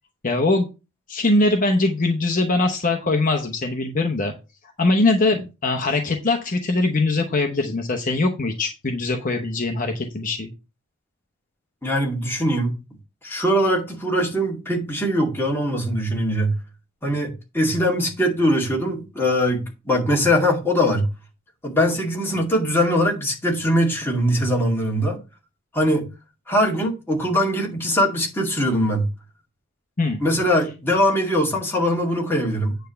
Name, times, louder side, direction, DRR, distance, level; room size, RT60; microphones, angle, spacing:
voice 1, 0.2-0.7 1.1-4.3 4.8-10.5 30.0-30.2, left 2 dB, 40° left, 0.9 m, -22 dB
voice 2, 11.8-12.7 13.2-16.6 17.0-21.1 21.6-25.2 25.7-26.1 26.5-29.1 30.2-32.8, equal, 10° left, 2.2 m, -21 dB
9.1 x 3.4 x 6.8 m
head